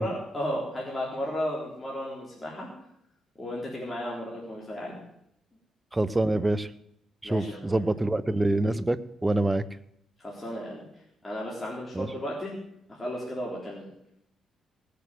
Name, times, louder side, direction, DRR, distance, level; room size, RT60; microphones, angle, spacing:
voice 1, 0.0-2.7 3.4-5.0 7.2-7.9 10.2-10.9 11.2-12.5 12.9-13.9, equal, 20° left, -4 dB, 4.0 m, -34 dB
voice 2, 5.9-6.7 7.2-9.6 11.9-12.1, right 2 dB, 15° right, 13 dB, 0.8 m, -26 dB
18.5 x 6.9 x 7.8 m, 0.78 s
cardioid pair, 90°, 0 cm